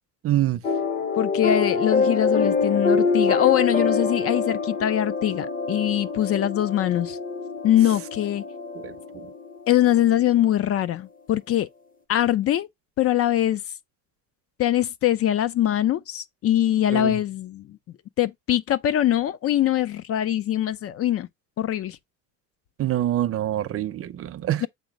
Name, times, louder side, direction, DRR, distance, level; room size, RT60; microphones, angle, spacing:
voice 1, 0.2-0.6 8.7-9.3 16.9-17.2 22.8-24.7, right 13 dB, 45° right, 0.6 m, -26 dB
sound 1, 0.6-10.0, left 4 dB, 25° left, 0.8 m, -25 dB
voice 2, 1.2-7.2 7.6-8.4 9.7-11.7 12.1-12.7 13.0-13.6 14.6-17.8 18.2-21.3 21.6-22.0 24.6-24.7, left 12 dB, 50° left, 0.4 m, -22 dB
7.9 x 2.9 x 5.1 m
cardioid pair, 170°, 31 cm